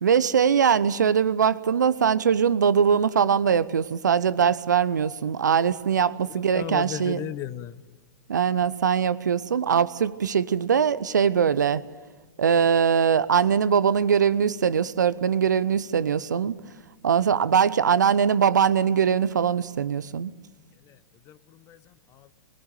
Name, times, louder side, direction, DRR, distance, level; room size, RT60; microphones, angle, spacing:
voice 1, 0.0-7.2 8.3-11.8 12.4-16.6 17.0-20.3, right 7 dB, 65° right, 0.9 m, -22 dB
voice 2, 6.5-7.8 20.8-21.0 21.2-22.3, left 11 dB, 30° left, 0.9 m, -36 dB
21.5 x 20.0 x 9.0 m
figure-of-eight pair, 105°, 10 cm